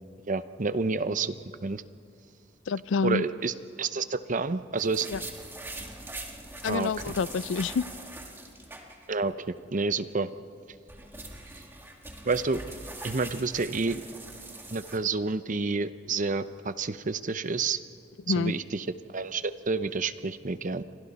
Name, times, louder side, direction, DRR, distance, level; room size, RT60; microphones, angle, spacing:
voice 1, 0.3-1.4 1.6-1.8 3.0-5.1 6.7-7.1 9.1-10.3 12.2-12.6 13.0-14.0 14.7-17.8 18.4-20.8, right 4 dB, 45° right, 0.7 m, -29 dB
voice 2, 2.7-3.2 5.1-5.2 6.6-7.9 18.3-18.5, left 5 dB, 75° left, 0.4 m, -28 dB
sound 1, 4.8-9.3 9.6-9.7 10.6-15.0, right 2 dB, 10° right, 1.7 m, -42 dB
29.0 x 24.5 x 4.2 m
head